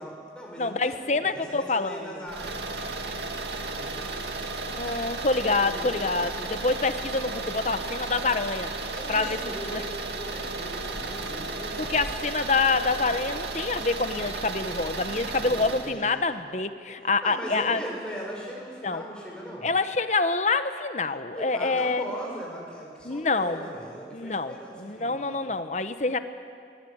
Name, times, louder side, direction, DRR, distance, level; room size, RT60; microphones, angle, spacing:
voice 1, 0.0-3.1 3.4-4.4 5.4-6.2 8.9-12.0 15.3-16.2 17.2-19.7 21.3-25.5, equal, 5° left, -3 dB, 6.4 m, -40 dB
voice 2, 0.6-2.1 4.8-8.7 9.1-9.4 9.7-9.8 11.8-17.8 18.8-19.0 19.6-22.1 23.0-23.7 24.1-26.2, left 3 dB, 40° left, 10 dB, 1.0 m, -26 dB
sound 1, 2.3-15.9, right 3 dB, 75° right, 2.2 m, -34 dB
24.0 x 21.5 x 8.8 m, 2.3 s
head